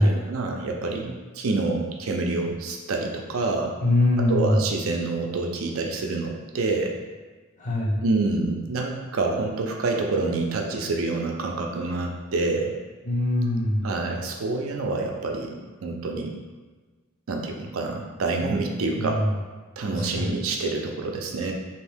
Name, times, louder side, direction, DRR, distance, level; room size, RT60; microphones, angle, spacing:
voice 1, 0.0-3.8 4.2-7.0 8.0-12.7 13.8-16.3 17.3-19.2 19.8-21.5, right 3 dB, 75° right, 2 dB, 0.5 m, -27 dB
voice 2, 3.8-4.6 7.6-8.0 13.0-13.8 19.0-19.2 19.9-20.4, left 1 dB, 35° left, -3 dB, 0.7 m, -22 dB
2.8 x 2.6 x 3.4 m, 1.3 s
head